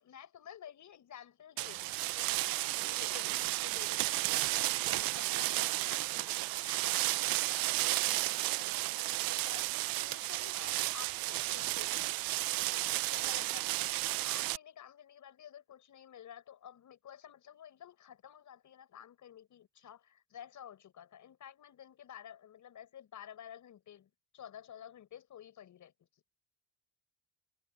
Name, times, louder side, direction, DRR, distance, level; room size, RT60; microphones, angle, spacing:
voice 1, 0.0-12.1 12.5-25.9, left 10 dB, 55° left, 5.8 m, -52 dB
sound 1, 1.6-14.6, right 18 dB, 70° right, 0.8 m, -33 dB
supercardioid pair, 85°, 36 cm